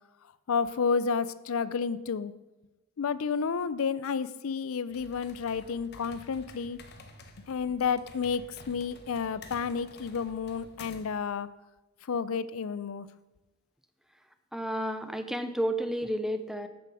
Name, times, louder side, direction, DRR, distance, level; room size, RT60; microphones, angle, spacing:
voice 1, 0.5-2.3 3.0-6.8 7.5-11.5 12.0-13.1, left 6 dB, 65° left, 16 dB, 0.4 m, -31 dB
sound 1, 4.9-11.2, left 3 dB, 50° left, 0.9 m, -51 dB
voice 2, 14.5-16.7, equal, ahead, 9 dB, 0.5 m, -31 dB
8.8 x 7.0 x 6.1 m, 1.1 s
head